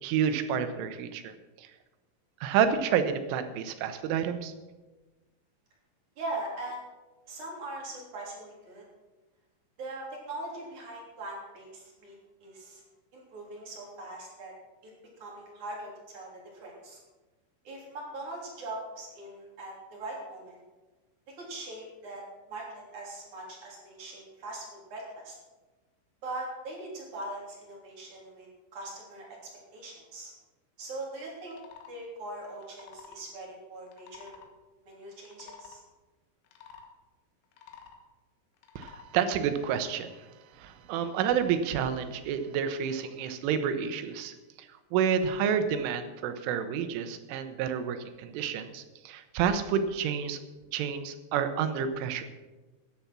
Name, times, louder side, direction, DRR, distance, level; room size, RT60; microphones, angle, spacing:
voice 1, 0.0-1.7 2.4-4.5 38.8-40.1 40.6-44.3 44.9-50.4 50.7-52.2, right 7 dB, 85° right, 9 dB, 3.5 m, -29 dB
voice 2, 6.2-6.9 7.3-8.8 9.8-12.8 13.1-14.5 15.2-17.0 17.6-20.6 21.4-22.2 22.5-24.6 24.9-25.4 26.2-29.3 29.7-30.3 30.8-31.6 31.9-34.4 34.8-35.8, right 2 dB, 45° right, -3 dB, 4.3 m, -41 dB
sound 1, 31.4-31.9 32.6-33.2 33.9-34.5 35.1-35.8 36.5-36.9 37.4-38.0 38.6-39.1, left 6 dB, 75° left, 3.7 m, -50 dB
14.0 x 10.0 x 6.0 m, 1.2 s
omnidirectional pair, 5.5 m